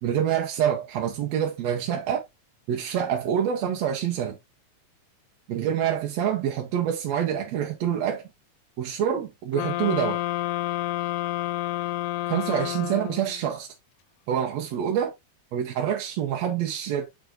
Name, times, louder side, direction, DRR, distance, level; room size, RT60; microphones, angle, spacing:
voice 1, 0.0-2.2 2.7-4.4 5.5-8.2 8.8-10.2 12.3-13.7 14.3-15.1 15.5-17.1, right 9 dB, 70° right, 2.0 m, -26 dB
sound 1, 9.5-13.4, left 16 dB, 85° left, 2.0 m, -29 dB
6.9 x 6.3 x 2.6 m
omnidirectional pair, 3.4 m